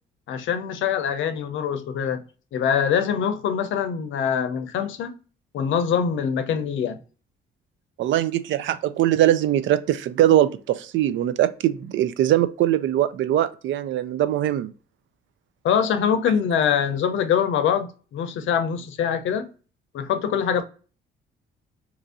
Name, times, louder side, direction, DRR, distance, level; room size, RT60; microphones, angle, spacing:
voice 1, 0.3-2.2 2.5-5.1 5.5-7.0 15.6-19.5 19.9-20.6, left 8 dB, 75° left, 0.6 m, -24 dB
voice 2, 8.0-14.7, right 12 dB, 75° right, 0.4 m, -21 dB
3.0 x 2.6 x 3.5 m
cardioid pair, 90°, 20 cm